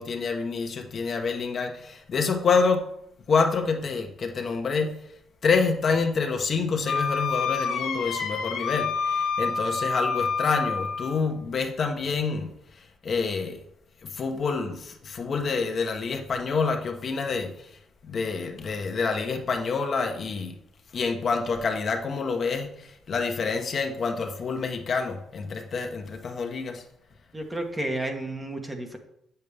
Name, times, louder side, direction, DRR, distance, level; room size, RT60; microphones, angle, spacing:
voice 1, 0.0-2.9 3.3-5.0 5.4-12.5 13.0-13.6 14.0-17.7 18.0-20.5 20.9-26.8, left 4 dB, 45° left, 4 dB, 1.0 m, -27 dB
Wind instrument woodwind instrument, 6.9-11.2, left 5 dB, 85° left, 1.4 m, -28 dB
voice 2, 27.3-29.0, right 1 dB, 15° right, 4 dB, 1.1 m, -31 dB
8.2 x 6.8 x 3.4 m, 0.76 s
cardioid pair, 105°, 0 cm